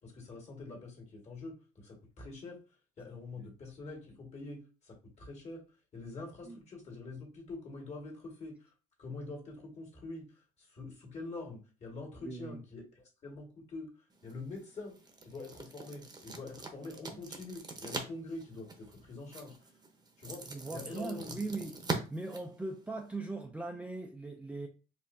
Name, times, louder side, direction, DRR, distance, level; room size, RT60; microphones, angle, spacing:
voice 1, 0.0-2.6 3.0-5.6 5.9-8.7 9.0-10.2 10.6-13.9 14.2-14.9 15.2-19.6 20.2-20.4 20.7-21.4, left 3 dB, 40° left, 1.8 m, -45 dB
voice 2, 3.1-3.5 6.4-6.6 12.2-12.6 17.1-17.2 20.5-21.8 22.1-24.7, right 3 dB, 10° right, 0.4 m, -40 dB
sound 1, 14.1-23.2, right 3 dB, 25° right, 0.8 m, -43 dB
4.5 x 2.5 x 2.6 m
cardioid pair, 110°, 17 cm